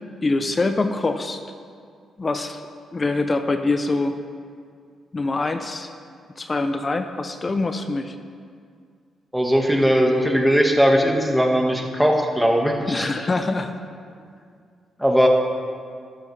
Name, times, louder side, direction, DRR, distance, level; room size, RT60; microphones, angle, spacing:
voice 1, 0.2-1.4 2.2-2.6 2.9-4.2 5.1-5.9 6.4-8.1 12.9-13.7, left 3 dB, 30° left, 7 dB, 0.6 m, -24 dB
voice 2, 9.3-13.1 15.0-15.3, equal, ahead, 1 dB, 1.6 m, -19 dB
13.0 x 12.0 x 3.3 m, 2.2 s
cardioid pair, 80°, 0 cm